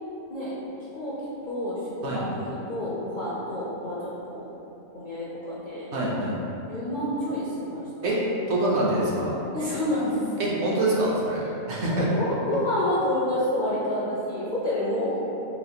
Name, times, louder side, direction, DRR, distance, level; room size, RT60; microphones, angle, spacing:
voice 1, 1.5-4.4 4.9-5.9 6.7-7.8 9.5-10.5 11.7-15.2, left 1 dB, 60° left, -8 dB, 0.5 m, -29 dB
voice 2, 5.9-6.3 8.0-8.2 8.5-9.4 10.4-11.4 11.7-12.1, right 1 dB, 60° right, -6 dB, 0.9 m, -25 dB
4.1 x 2.9 x 2.8 m, 3.0 s
omnidirectional pair, 1.4 m